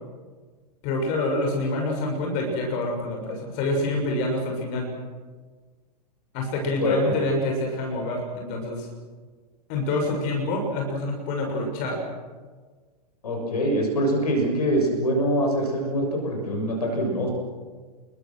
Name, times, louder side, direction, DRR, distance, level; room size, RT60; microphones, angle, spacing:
voice 1, 0.8-4.9 6.3-8.9 9.7-12.0, left 2 dB, 40° left, 1 dB, 6.5 m, -26 dB
voice 2, 6.8-7.2 13.2-17.3, equal, 65° left, 2 dB, 6.8 m, -24 dB
29.5 x 22.0 x 6.4 m, 1.5 s
figure-of-eight pair, 100°, 21 cm